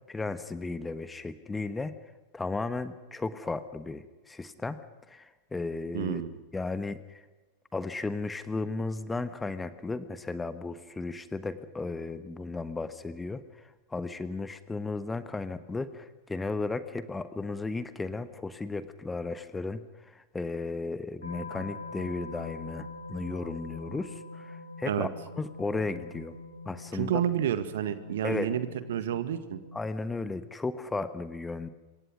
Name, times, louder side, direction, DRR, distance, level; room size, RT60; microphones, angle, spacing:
voice 1, 0.1-1.9 2.3-4.8 5.1-6.2 6.5-7.2 7.7-25.1 25.4-26.4 26.6-27.2 28.2-28.5 29.7-31.7, left 3 dB, 10° left, 13 dB, 1.2 m, -35 dB
voice 2, 5.9-6.3 24.9-25.1 26.9-29.6, right 10 dB, 60° right, 12 dB, 1.7 m, -30 dB
sound 1, 21.2-29.8, left 3 dB, 80° left, 1.9 m, -44 dB
26.5 x 23.5 x 6.3 m, 1.2 s
figure-of-eight pair, 90°, 0 cm